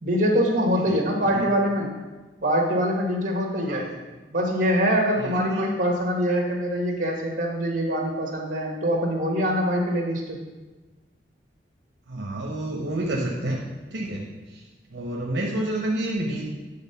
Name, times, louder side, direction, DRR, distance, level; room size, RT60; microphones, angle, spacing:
voice 1, 0.0-1.9 2.4-3.9 4.3-10.4, equal, 45° right, 0 dB, 1.5 m, -24 dB
voice 2, 5.2-5.7 12.1-13.6 13.9-14.6 14.9-16.4, right 1 dB, 70° right, -2 dB, 0.9 m, -29 dB
9.6 x 3.8 x 5.7 m, 1.2 s
head